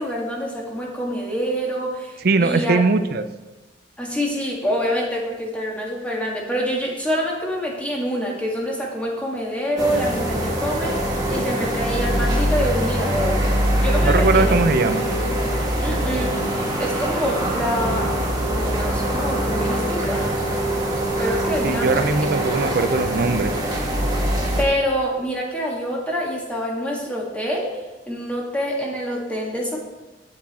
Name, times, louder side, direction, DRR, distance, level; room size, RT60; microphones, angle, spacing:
voice 1, 0.0-2.8 4.0-13.4 13.8-14.6 15.8-16.4 16.8-18.1 18.5-20.3 21.2-22.1 24.3-29.8, equal, 5° left, -3 dB, 1.7 m, -26 dB
voice 2, 2.2-3.2 14.0-15.0 21.6-23.5, right 3 dB, 50° right, 10 dB, 0.5 m, -20 dB
sound 1, 9.8-24.6, right 1 dB, 20° right, 1.5 m, -23 dB
8.6 x 8.4 x 4.2 m, 1.1 s
head